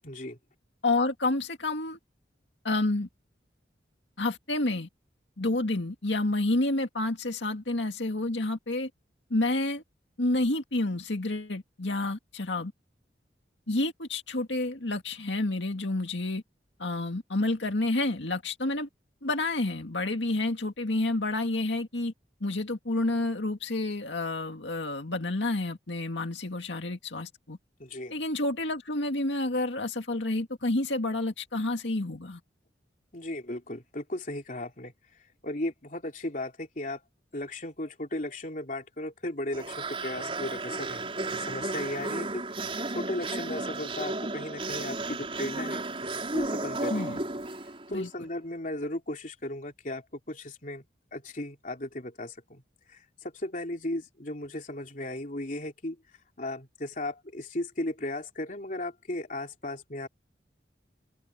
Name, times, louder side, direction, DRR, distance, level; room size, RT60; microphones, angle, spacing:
voice 1, 0.0-0.4 27.8-28.1 33.1-34.9 35.4-37.0 37.3-42.5 42.9-47.2 47.9-50.8 51.1-52.6 52.9-56.0 56.4-60.1, left 1 dB, 45° left, 3.4 m, -36 dB
voice 2, 0.8-2.0 2.6-3.1 4.2-4.9 5.4-8.9 9.3-9.8 10.2-12.7 13.7-16.4 16.8-18.9 19.2-22.1 22.4-27.6 28.1-32.4 46.9-47.2 47.9-48.1, left 2 dB, 90° left, 2.1 m, -29 dB
sound 1, 39.5-48.0, right 2 dB, 30° right, 5.1 m, -33 dB
head